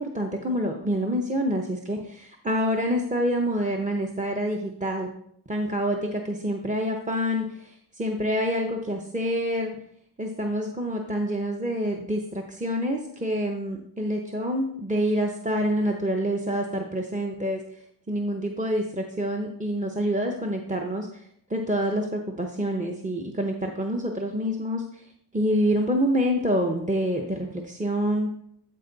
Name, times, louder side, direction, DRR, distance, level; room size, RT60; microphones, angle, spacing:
voice 1, 0.0-5.1 5.5-9.7 10.2-17.6 18.1-25.0 25.3-28.3, equal, 20° right, 2 dB, 0.7 m, -27 dB
13.0 x 4.5 x 3.9 m, 0.72 s
wide cardioid pair, 120°, 43 cm